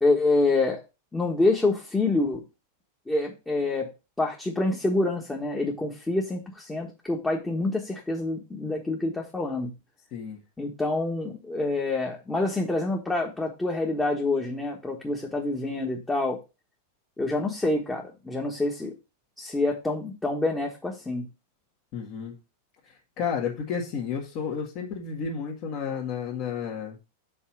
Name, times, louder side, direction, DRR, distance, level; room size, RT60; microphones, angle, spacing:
voice 1, 0.0-0.8 1.1-2.4 3.1-3.9 4.2-9.7 10.6-16.4 17.2-18.9 19.4-21.2, left 2 dB, 10° left, -1 dB, 1.3 m, -27 dB
voice 2, 21.9-22.4 22.8-27.0, left 6 dB, 40° left, -3 dB, 1.8 m, -32 dB
5.5 x 4.3 x 6.0 m, 0.28 s
supercardioid pair, 140°, 0 cm